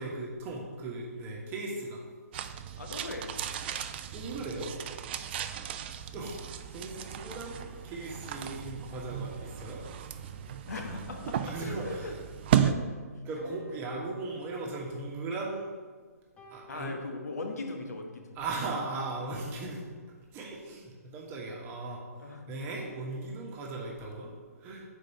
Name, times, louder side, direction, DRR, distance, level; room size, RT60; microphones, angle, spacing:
voice 1, 0.0-2.0 4.1-4.7 6.1-6.4 6.7-9.8 11.4-12.1 13.2-15.7 16.5-17.0 18.3-19.8 20.3-22.0 22.5-24.3 24.6-24.8, right 2 dB, 25° right, -2 dB, 1.3 m, -37 dB
sound 1, 2.3-12.7, right 10 dB, 40° right, 0.3 m, -34 dB
voice 2, 2.8-3.4 10.7-12.2 12.5-12.8 16.7-18.4 22.2-22.5, left 3 dB, 70° left, 3 dB, 1.0 m, -39 dB
sound 2, 5.8-16.2 18.3-18.4 18.6-20.4, right 1 dB, 5° right, 1.7 m, -57 dB
sound 3, 13.4-15.1 16.4-17.8 19.4-19.6, left 1 dB, 10° left, 0.9 m, -57 dB
6.6 x 4.5 x 4.3 m, 1.5 s
figure-of-eight pair, 130°, 9 cm